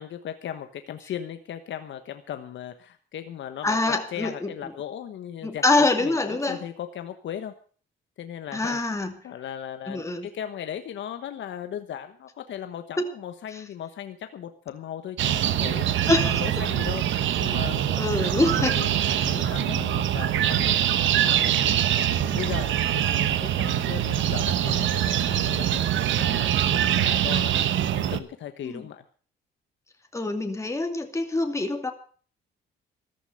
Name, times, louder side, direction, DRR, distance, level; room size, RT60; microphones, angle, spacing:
voice 1, 0.0-7.5 8.2-8.8 9.2-17.0 17.4-20.7 21.2-21.8 22.1-25.8 26.2-29.0, left 10 dB, 70° left, 8 dB, 1.3 m, -37 dB
voice 2, 3.6-4.5 5.4-6.6 8.5-9.2 9.9-10.3 16.1-16.4 18.0-18.8 28.6-28.8 30.1-31.9, left 2 dB, 15° left, 5 dB, 2.4 m, -25 dB
sound 1, 15.2-28.2, right 11 dB, 75° right, 1.1 m, -24 dB
14.5 x 11.5 x 6.4 m, 0.43 s
cardioid pair, 90°, 20 cm